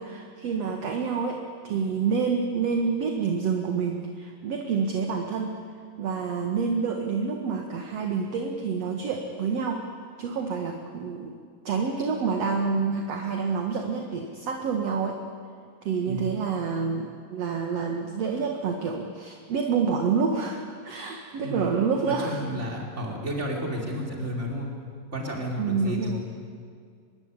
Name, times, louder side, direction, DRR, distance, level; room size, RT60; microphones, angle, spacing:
voice 1, 0.0-1.4 1.6-5.6 6.0-9.8 10.2-11.4 11.6-15.2 15.8-22.5 25.6-26.2, right 5 dB, 55° right, 3 dB, 2.5 m, -28 dB
voice 2, 16.0-16.4 21.4-21.7 22.1-24.7 25.1-26.2, equal, 20° right, -1 dB, 4.7 m, -32 dB
25.0 x 22.5 x 9.8 m, 2.2 s
omnidirectional pair, 4.0 m